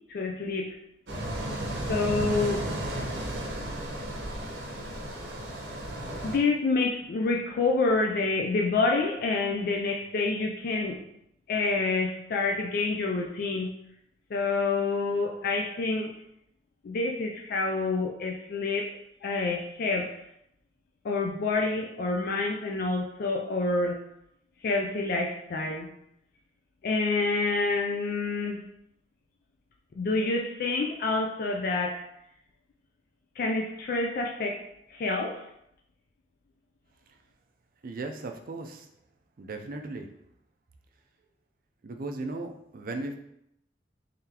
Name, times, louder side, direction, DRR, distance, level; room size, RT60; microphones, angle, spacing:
voice 1, 0.1-0.8 1.9-2.7 6.2-11.0 11.5-13.7 14.3-16.1 16.8-18.9 19.2-20.2 21.0-24.0 24.6-25.9 26.8-28.6 30.0-32.0 33.4-34.6 34.9-35.4, left 3 dB, 55° left, 1 dB, 0.4 m, -28 dB
sound 1, 1.1-6.4, right 1 dB, 80° right, 0.8 m, -34 dB
voice 2, 37.8-38.9 39.4-40.1 41.8-43.2, right 2 dB, 55° right, 5 dB, 0.4 m, -36 dB
3.8 x 3.3 x 2.8 m, 0.78 s
head